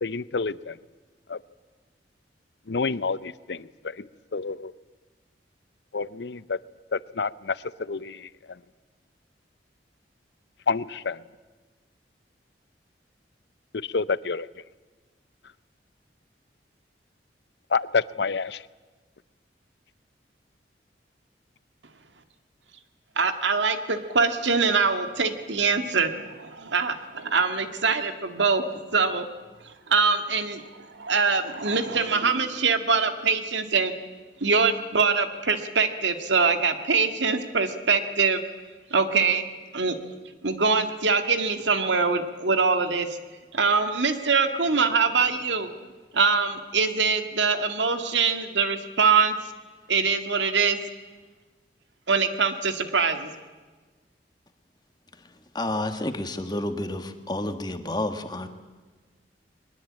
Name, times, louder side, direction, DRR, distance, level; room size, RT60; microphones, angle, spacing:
voice 1, 0.0-0.8 1.3-1.4 2.7-4.7 5.9-6.6 6.9-8.6 10.7-11.2 13.7-14.5 17.7-18.6, left 4 dB, 70° left, 18 dB, 0.6 m, -29 dB
voice 2, 23.2-28.6 28.9-29.3 29.9-30.6 30.9-33.9 34.4-38.4 38.9-39.5 39.7-40.0 40.4-43.1 43.5-45.7 46.1-49.4 49.9-50.8 52.1-53.3, right 5 dB, 85° right, 8 dB, 1.9 m, -23 dB
voice 3, 55.5-58.5, left 1 dB, 25° left, 8 dB, 1.5 m, -30 dB
22.0 x 21.0 x 8.7 m, 1.3 s
head